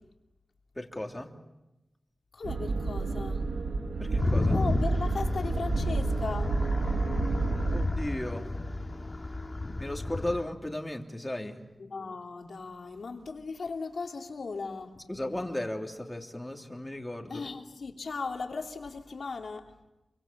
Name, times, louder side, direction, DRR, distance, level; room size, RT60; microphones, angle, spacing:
voice 1, 0.7-1.3 4.0-4.6 7.6-8.5 9.8-11.6 15.0-17.4, left 1 dB, 15° left, 3 dB, 3.0 m, -35 dB
voice 2, 2.3-3.4 4.5-6.5 11.8-15.0 17.3-19.7, left 4 dB, 75° left, 2 dB, 3.0 m, -37 dB
sound 1, 2.4-7.9, right 3 dB, 90° right, 1.9 m, -30 dB
sound 2, 4.2-10.4, left 2 dB, 30° left, 2.2 m, -32 dB
28.5 x 24.0 x 7.5 m, 0.99 s
wide cardioid pair, 90°, 0 cm